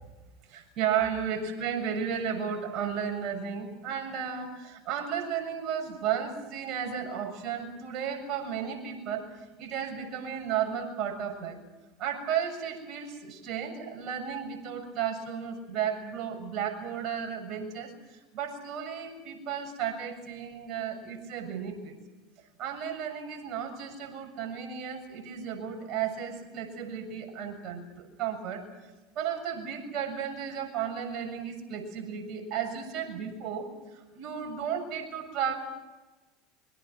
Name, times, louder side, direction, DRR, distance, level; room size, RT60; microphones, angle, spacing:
voice 1, 0.5-9.2 9.6-11.6 12.0-21.9 22.6-28.6 29.2-35.6, right 8 dB, 50° right, 3 dB, 7.1 m, -34 dB
26.0 x 23.5 x 6.3 m, 1.2 s
hypercardioid pair, 90°, 0 cm